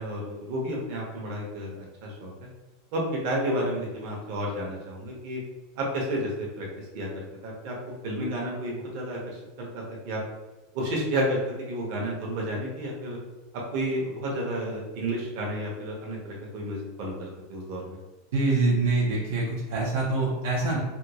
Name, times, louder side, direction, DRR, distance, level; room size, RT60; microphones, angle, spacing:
voice 1, 0.0-2.3 2.9-5.4 5.8-7.7 8.0-10.2 10.7-13.2 13.7-18.0, right 1 dB, 45° right, -2 dB, 0.9 m, -31 dB
voice 2, 18.3-20.8, right 3 dB, 70° right, -3 dB, 0.7 m, -25 dB
3.5 x 2.3 x 2.9 m, 1.1 s
supercardioid pair, 175°, 0 cm